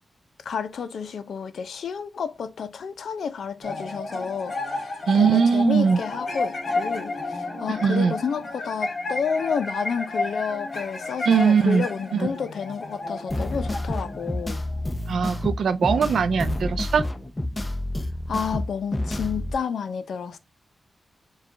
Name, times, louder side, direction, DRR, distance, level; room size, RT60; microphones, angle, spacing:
voice 1, 0.4-14.6 18.3-20.4, left 6 dB, 85° left, 0.5 m, -30 dB
sound 1, 3.6-15.2, left 2 dB, 50° left, 1.7 m, -32 dB
voice 2, 5.1-6.0 7.8-8.2 11.3-11.8 12.1-12.3 15.1-17.1, right 6 dB, 85° right, 0.4 m, -20 dB
sound 2, 13.3-19.5, left 1 dB, 20° left, 0.6 m, -29 dB
4.7 x 2.3 x 3.7 m
wide cardioid pair, 110°, 0 cm